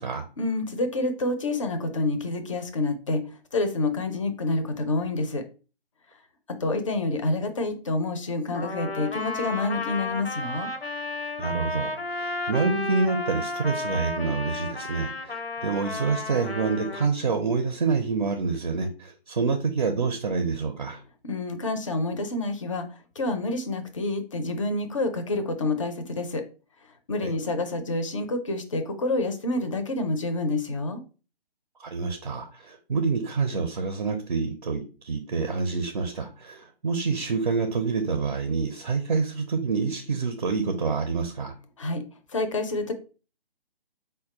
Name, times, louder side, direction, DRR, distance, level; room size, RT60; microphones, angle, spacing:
voice 1, 0.4-3.3 3.5-5.4 6.6-10.7 21.2-26.4 27.1-31.0 41.8-42.0 42.3-42.9, left 2 dB, 35° left, 7 dB, 0.5 m, -28 dB
Trumpet, 8.5-17.1, left 2 dB, 90° left, 0.7 m, -32 dB
voice 2, 11.4-21.0 27.2-27.3 31.8-41.5, right 4 dB, 40° right, 6 dB, 0.5 m, -27 dB
4.4 x 2.2 x 4.1 m, 0.34 s
figure-of-eight pair, 140°, 30 cm